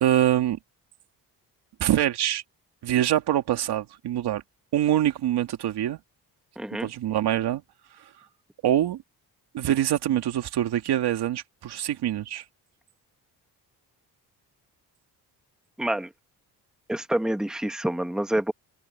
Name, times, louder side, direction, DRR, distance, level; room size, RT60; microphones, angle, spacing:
voice 1, 0.0-0.6 1.8-2.4 2.8-4.4 4.7-6.0 6.8-7.6 8.6-9.0 9.5-12.4, right 12 dB, 80° right, 2.3 m, -24 dB
voice 2, 6.6-6.9 15.8-16.1 16.9-18.5, right 1 dB, ahead, 1.3 m, -27 dB
cardioid pair, 95°, 39 cm